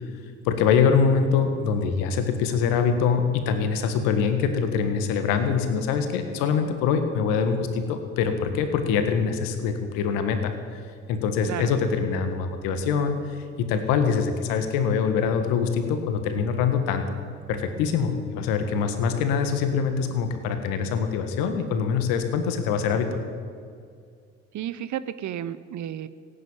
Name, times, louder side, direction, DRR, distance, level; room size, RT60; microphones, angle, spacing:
voice 1, 0.4-10.8 11.1-13.2 13.6-17.1 17.5-23.2, left 6 dB, 75° left, 7 dB, 1.7 m, -24 dB
voice 2, 24.5-26.1, right 11 dB, 55° right, 15 dB, 0.9 m, -32 dB
17.0 x 9.2 x 9.0 m, 2.2 s
hypercardioid pair, 50°, 34 cm